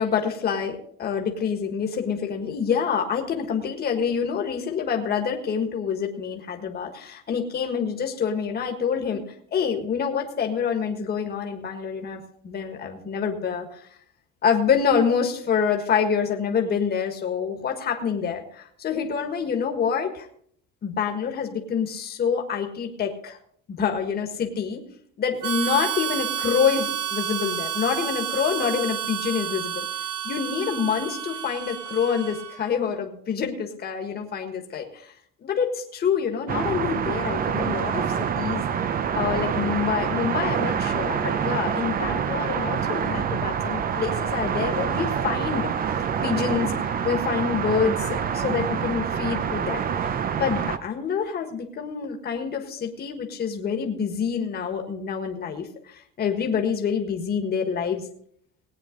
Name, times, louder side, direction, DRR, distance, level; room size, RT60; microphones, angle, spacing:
voice 1, 0.0-9.2 9.5-13.8 14.4-20.3 20.8-23.4 23.8-24.8 25.2-29.8 30.2-35.1 35.4-38.0 38.3-45.7 46.2-46.8 47.0-49.8 50.4-58.0, left 6 dB, 35° left, 4 dB, 1.6 m, -26 dB
Harmonica, 25.4-32.7, right 11 dB, 85° right, 1.7 m, -30 dB
sound 1, 36.5-50.8, right 7 dB, 30° right, 0.6 m, -26 dB
18.5 x 9.2 x 3.8 m, 0.64 s
cardioid pair, 160°, 29 cm